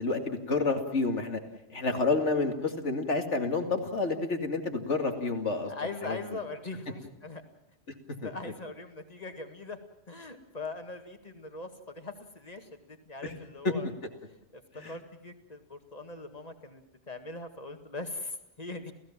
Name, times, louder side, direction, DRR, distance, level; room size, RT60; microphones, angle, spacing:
voice 1, 0.0-1.4 1.7-5.7 6.0-6.2 8.2-8.3 13.2-13.3 13.6-13.7 14.7-14.9, left 3 dB, 85° left, 5 dB, 2.7 m, -29 dB
voice 2, 5.7-7.4 8.2-9.8 10.1-13.9 14.2-18.9, left 3 dB, 35° left, 6 dB, 2.1 m, -41 dB
29.5 x 16.5 x 7.4 m, 0.78 s
omnidirectional pair, 1.2 m